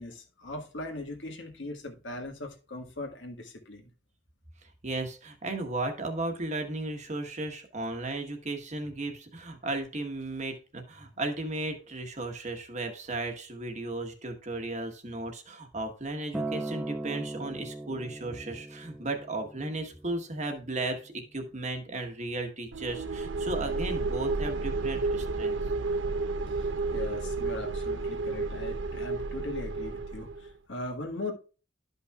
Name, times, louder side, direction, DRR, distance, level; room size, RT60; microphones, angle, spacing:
voice 1, 0.0-3.9 26.6-31.3, left 2 dB, 85° left, 1.6 m, -39 dB
voice 2, 4.8-25.6, right 2 dB, 40° right, 1.2 m, -35 dB
Acoustic guitar, 16.3-20.6 21.5-21.6, right 2 dB, 5° right, 0.3 m, -39 dB
sound 1, 22.7-30.5, right 3 dB, 80° right, 0.6 m, -31 dB
12.0 x 5.4 x 2.3 m
head